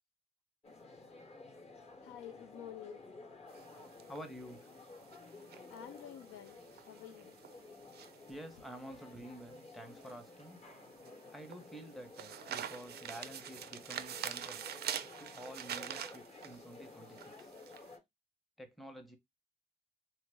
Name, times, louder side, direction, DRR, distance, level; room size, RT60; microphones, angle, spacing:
sound 1, 0.6-18.0, left 3 dB, 30° left, 0.8 m, -54 dB
voice 1, 2.0-3.0 5.7-6.6 6.9-7.3, left 10 dB, 85° left, 0.5 m, -49 dB
sound 2, 3.5-17.9, right 10 dB, 55° right, 0.4 m, -46 dB
voice 2, 4.0-4.6 8.3-10.6 11.3-14.6 15.2-17.5 18.6-19.2, right 1 dB, ahead, 0.7 m, -50 dB
3.2 x 2.0 x 3.3 m
cardioid pair, 90°, 20 cm